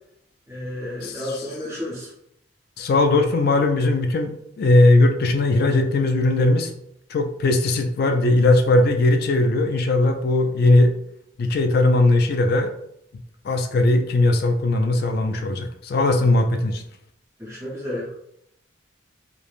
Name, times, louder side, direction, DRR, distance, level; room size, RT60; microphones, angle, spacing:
voice 1, 0.5-2.1 17.4-18.1, left 1 dB, 15° right, -9 dB, 0.7 m, -31 dB
voice 2, 1.0-1.3 2.8-6.7 7.1-10.9 11.4-12.7 13.4-16.8, left 2 dB, 50° left, 6 dB, 0.3 m, -19 dB
3.2 x 2.1 x 2.4 m, 0.74 s
head